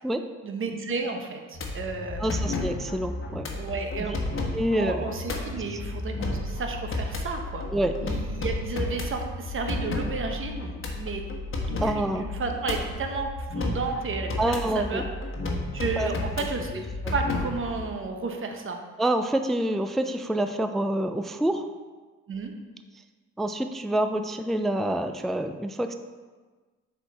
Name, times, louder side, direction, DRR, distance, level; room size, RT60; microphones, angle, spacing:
voice 1, 0.4-2.5 3.5-4.3 4.8-7.7 8.0-11.2 11.8-15.0 15.7-16.8 17.1-18.8 22.3-22.5, right 4 dB, 45° right, 4 dB, 1.0 m, -32 dB
sound 1, 1.5-17.8, left 2 dB, 45° left, 1.2 m, -32 dB
voice 2, 2.2-3.5 3.9-4.2 4.5-5.1 5.7-5.8 7.7-7.9 11.8-12.3 14.4-15.1 16.0-16.1 16.7-17.1 19.0-21.7 23.4-25.9, right 1 dB, ahead, 8 dB, 0.3 m, -27 dB
7.0 x 4.5 x 4.1 m, 1.4 s
cardioid pair, 90°, 30 cm